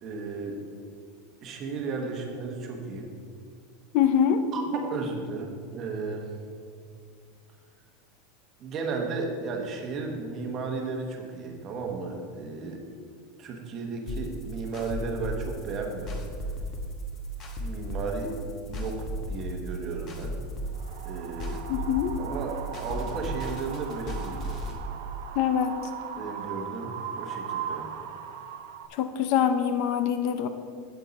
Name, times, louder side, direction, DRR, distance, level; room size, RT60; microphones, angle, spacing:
voice 1, 0.0-0.6 1.4-3.1 4.5-6.2 8.6-12.8 13.4-16.2 17.6-18.3 18.7-19.0 19.3-20.4 21.0-21.6 22.2-24.5 26.2-27.8, right 4 dB, 25° right, 2 dB, 1.1 m, -34 dB
voice 2, 3.9-4.4 21.7-22.2 25.4-25.7 28.9-30.5, left 9 dB, 45° left, 9 dB, 0.5 m, -24 dB
sound 1, 14.1-24.7, equal, 25° left, 1.1 m, -35 dB
Wind, 20.7-28.9, right 8 dB, 60° right, 0.7 m, -38 dB
9.2 x 8.2 x 4.1 m, 2.2 s
supercardioid pair, 175°, 0 cm